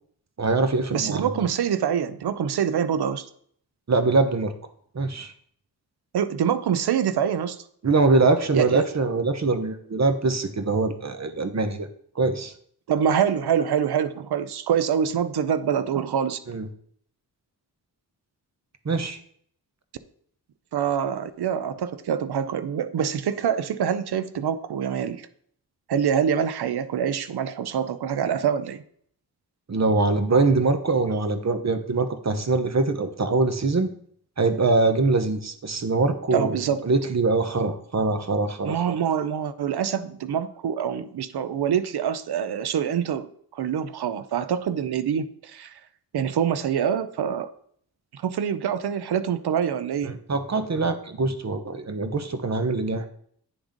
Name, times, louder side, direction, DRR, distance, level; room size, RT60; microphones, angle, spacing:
voice 1, 0.4-1.4 3.9-4.5 4.9-5.3 7.8-11.9 12.1-12.5 16.5-16.7 18.8-19.2 29.7-33.9 34.4-38.8 50.0-53.1, right 3 dB, 40° right, 9 dB, 1.1 m, -23 dB
voice 2, 0.9-3.3 6.1-7.6 8.5-8.9 12.9-16.4 20.7-25.2 25.9-28.8 36.3-36.8 38.6-43.3 43.5-45.7 46.1-47.5 48.1-50.2, right 8 dB, 70° right, 13 dB, 0.7 m, -25 dB
9.0 x 3.5 x 5.1 m, 0.63 s
cardioid pair, 50°, 41 cm